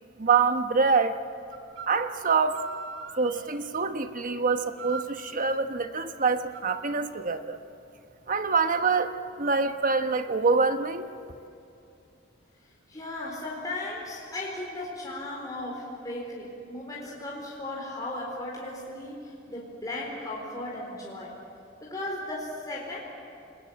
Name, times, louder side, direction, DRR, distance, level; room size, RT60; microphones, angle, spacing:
voice 1, 0.2-1.2 1.9-2.6 3.2-7.6 8.3-11.1, right 4 dB, 45° right, 8 dB, 1.2 m, -25 dB
sound 1, 1.5-1.9 2.2-3.5 4.7-5.1 6.5-6.8, right 5 dB, 75° right, 3.0 m, -40 dB
voice 2, 12.9-21.3 21.8-23.0, left 1 dB, 20° left, -4 dB, 4.3 m, -36 dB
29.0 x 21.0 x 8.8 m, 2.5 s
head